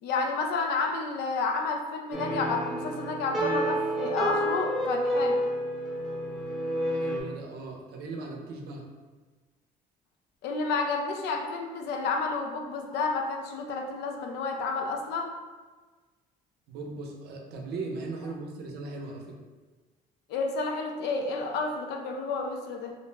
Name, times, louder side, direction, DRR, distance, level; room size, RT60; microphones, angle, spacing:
voice 1, 0.0-5.4 10.4-15.3 20.3-22.9, left 4 dB, 80° left, 3 dB, 0.4 m, -30 dB
sound 1, 2.1-7.2, equal, ahead, 0.5 m, -29 dB
voice 2, 6.9-8.9 16.7-19.4, right 3 dB, 75° right, 1 dB, 0.5 m, -38 dB
2.5 x 2.0 x 3.2 m, 1.3 s
cardioid pair, 110°, 17 cm